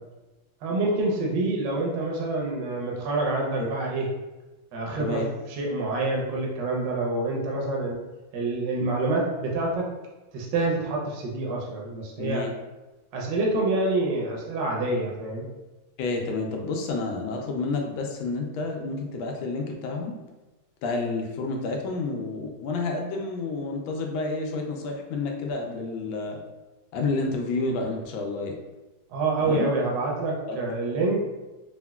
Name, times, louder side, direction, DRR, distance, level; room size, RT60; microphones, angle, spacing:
voice 1, 0.6-4.1 4.7-8.0 8.3-9.9 10.3-12.5 13.1-15.5 29.1-31.2, right 2 dB, 70° right, -2 dB, 1.3 m, -27 dB
voice 2, 12.2-12.5 16.0-20.2 20.8-26.4 26.9-28.6 29.4-29.7 30.5-30.6, left 3 dB, 85° left, 1 dB, 1.4 m, -30 dB
4.0 x 2.1 x 2.2 m, 1.1 s
omnidirectional pair, 2.1 m